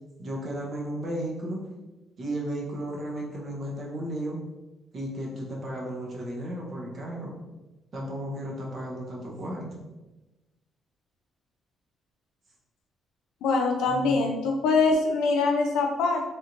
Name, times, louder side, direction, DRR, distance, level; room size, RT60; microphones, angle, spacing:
voice 1, 0.2-1.6 2.2-4.4 4.9-7.4 7.9-9.8 13.9-14.2, right 1 dB, 50° right, -2 dB, 1.0 m, -34 dB
voice 2, 13.4-16.2, left 3 dB, 90° left, 2 dB, 0.5 m, -23 dB
3.3 x 2.6 x 2.9 m, 1.1 s
cardioid pair, 90°, 0 cm